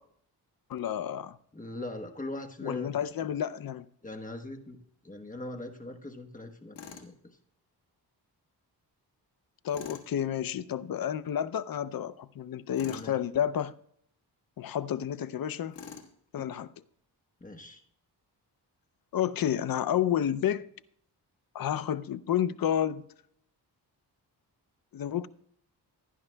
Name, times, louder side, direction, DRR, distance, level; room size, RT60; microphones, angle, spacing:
voice 1, 0.7-1.4 2.6-3.8 9.6-13.8 14.6-15.8 16.3-16.7 19.1-20.7 21.5-23.1 24.9-25.3, left 10 dB, 55° left, 0.6 m, -30 dB
voice 2, 1.5-2.9 4.0-4.8 5.0-7.1 12.8-13.1 17.4-17.8, left 1 dB, 20° left, 1.1 m, -41 dB
Tools, 6.8-7.1 9.7-10.1 12.7-13.1 15.7-16.1, left 6 dB, 85° left, 1.6 m, -45 dB
17.0 x 11.0 x 2.2 m
cardioid pair, 85°, 42 cm